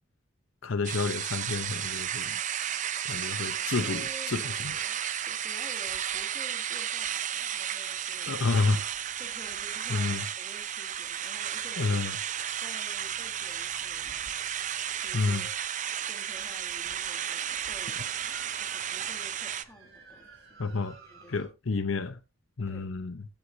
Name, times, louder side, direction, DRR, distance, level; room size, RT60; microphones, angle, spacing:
voice 1, 0.6-2.4 3.0-4.8 8.3-8.9 9.9-10.2 11.8-12.1 15.1-15.5 20.6-21.0 21.3-22.2 22.6-23.3, left 4 dB, 75° left, 0.8 m, -30 dB
sound 1, 0.8-19.6, right 9 dB, 35° right, 0.5 m, -33 dB
voice 2, 3.4-8.3 9.2-12.0 12.6-14.8 15.0-15.5 16.1-21.5 22.7-22.9, equal, 10° left, 2.8 m, -51 dB
sound 2, 4.0-5.8 7.8-15.2 16.3-16.4 17.5-21.5, right 4 dB, 65° right, 6.4 m, -56 dB
15.0 x 6.4 x 2.7 m
head